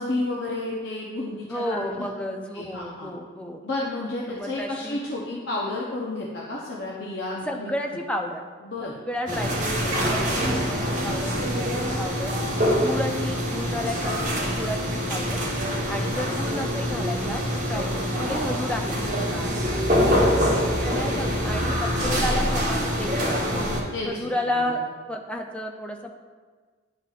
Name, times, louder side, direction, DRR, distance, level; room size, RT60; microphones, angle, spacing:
voice 1, 0.0-2.1 2.5-3.1 3.6-7.7 8.6-9.0 12.6-12.7 15.7-15.8 20.0-20.3 20.9-21.1 23.9-24.1, left 2 dB, 65° left, -3 dB, 0.7 m, -31 dB
voice 2, 1.5-3.6 4.3-5.0 7.4-8.4 8.8-12.3 12.7-15.4 15.9-19.8 20.8-23.7 24.0-24.8 25.1-26.2, left 1 dB, 5° left, 2 dB, 0.4 m, -32 dB
sound 1, 9.3-23.8, equal, 40° right, 1.1 m, -25 dB
10.5 x 4.1 x 2.4 m, 1.5 s
head